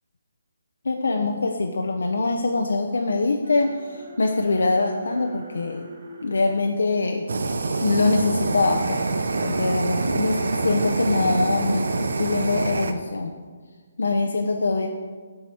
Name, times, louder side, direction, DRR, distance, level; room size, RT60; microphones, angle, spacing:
voice 1, 0.8-5.9 6.2-7.2 7.8-9.0 9.4-13.4 14.0-14.9, left 3 dB, 90° left, 3 dB, 0.6 m, -23 dB
sound 1, 3.4-9.7, right 1 dB, 60° right, 1.2 m, -45 dB
Fire, 7.3-12.9, right 3 dB, 80° right, 0.6 m, -25 dB
7.8 x 4.8 x 4.2 m, 1.5 s
hypercardioid pair, 165°, 0 cm